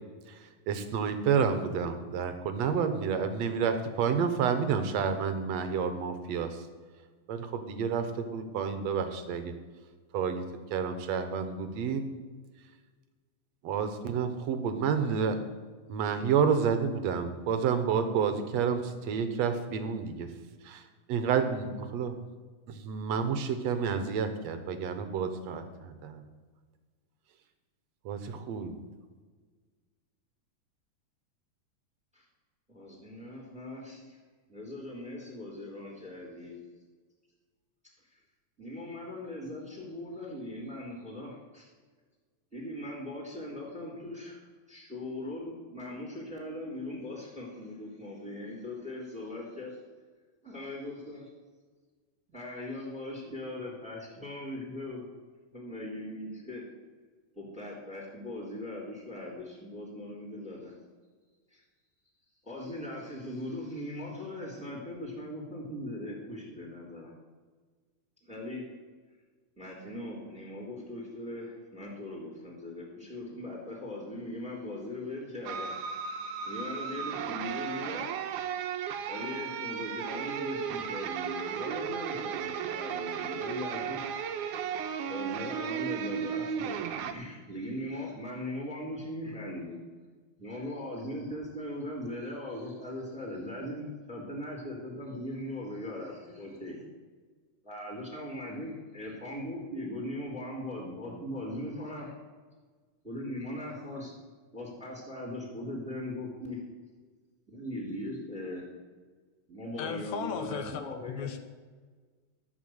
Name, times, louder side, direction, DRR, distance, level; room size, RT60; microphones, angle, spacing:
voice 1, 0.7-6.6 7.3-9.5 10.1-10.4 10.7-12.0 13.6-15.4 15.9-20.3 20.6-20.8 21.1-22.2 22.7-26.2 28.1-28.7, right 6 dB, 65° right, 9 dB, 2.1 m, -29 dB
voice 2, 32.7-34.2 34.5-36.6 38.1-38.2 38.6-41.7 42.5-44.4 44.7-49.8 50.4-51.3 52.3-55.0 55.5-56.6 57.3-60.7 61.5-61.6 62.4-67.1 68.2-68.7 69.6-75.7 76.4-78.1 79.1-84.0 85.1-89.8 90.4-96.8 97.6-102.1 103.0-104.1 104.5-106.6 107.5-108.6 109.5-111.3, left 1 dB, ahead, -1 dB, 3.3 m, -39 dB
sound 1, 75.5-87.1, right 8 dB, 80° right, 2.3 m, -35 dB
voice 3, 109.8-110.8 111.1-111.4, left 7 dB, 70° left, 7 dB, 2.1 m, -36 dB
12.5 x 7.0 x 8.0 m, 1.5 s
omnidirectional pair, 3.5 m